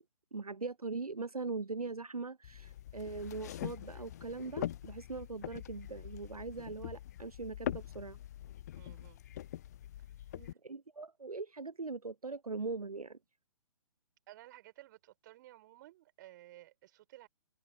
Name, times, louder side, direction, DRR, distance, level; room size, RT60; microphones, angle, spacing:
voice 1, 0.3-8.2 10.3-13.2, right 4 dB, 80° right, 0.8 m, -41 dB
sound 1, 2.4-10.5, left 12 dB, 30° left, 0.5 m, -43 dB
voice 2, 8.8-9.2 10.4-10.6 14.3-17.3, right 15 dB, 35° right, 5.8 m, -56 dB
figure-of-eight pair, 130°, 19 cm